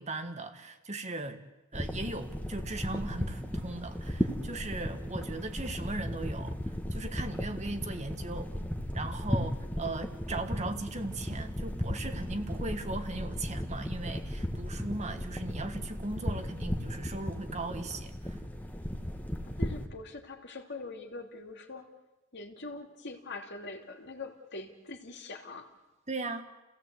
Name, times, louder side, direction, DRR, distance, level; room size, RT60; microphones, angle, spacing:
voice 1, 0.0-1.4 1.7-8.5 8.9-18.4 26.1-26.4, right 2 dB, 30° right, 7 dB, 1.5 m, -38 dB
sound 1, 1.7-19.9, equal, 5° left, 1.5 m, -36 dB
voice 2, 9.3-9.7 19.6-21.9 22.3-25.7, left 3 dB, 55° left, 3 dB, 2.7 m, -43 dB
30.0 x 16.5 x 8.2 m, 1.1 s
head